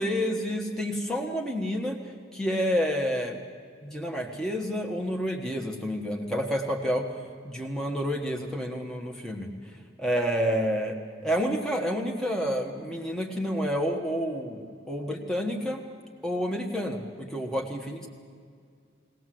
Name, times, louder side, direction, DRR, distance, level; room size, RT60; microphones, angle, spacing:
voice 1, 0.0-2.0 2.3-3.4 3.8-7.1 7.4-9.5 10.0-10.9 11.2-15.8 16.2-18.1, equal, 5° left, 0 dB, 1.4 m, -29 dB
21.0 x 18.5 x 7.7 m, 2.1 s
head